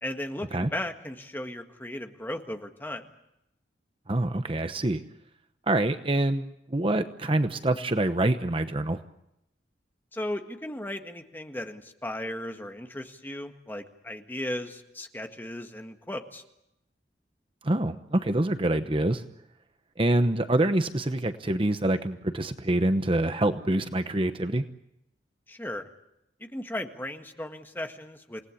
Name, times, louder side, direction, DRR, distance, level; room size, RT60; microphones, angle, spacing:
voice 1, 0.0-3.0 10.1-16.4 25.5-25.9 26.4-28.4, left 1 dB, 10° left, 5 dB, 1.7 m, -36 dB
voice 2, 4.1-5.0 5.7-9.0 17.6-19.2 20.0-24.7, right 1 dB, 30° right, 9 dB, 1.0 m, -26 dB
28.0 x 19.0 x 8.5 m, 0.83 s
head